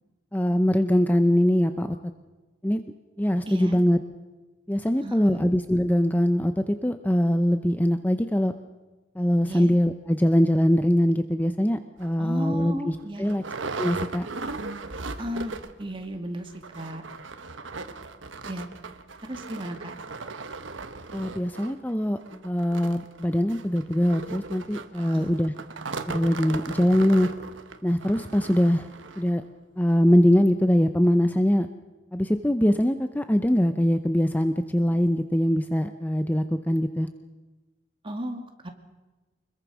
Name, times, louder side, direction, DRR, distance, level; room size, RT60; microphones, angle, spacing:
voice 1, 0.3-1.9 2.6-2.8 3.2-4.0 4.7-8.5 9.2-13.4 13.8-14.3 21.1-25.5 26.1-27.3 27.8-28.9 29.2-29.4 29.8-31.7 32.1-37.1, equal, 10° left, 8 dB, 0.6 m, -22 dB
voice 2, 3.5-3.8 5.0-5.5 9.5-9.7 12.2-13.4 15.2-17.0 18.5-18.7 19.2-19.9 25.1-25.3 38.0-38.7, equal, 25° right, 4 dB, 2.3 m, -35 dB
sound 1, 12.0-12.1 12.6-12.7 12.9-15.9 16.1-16.2 16.5-29.3 29.9-30.0 30.4-30.5, right 3 dB, 85° right, 1.3 m, -38 dB
25.0 x 21.5 x 6.2 m, 1.2 s
head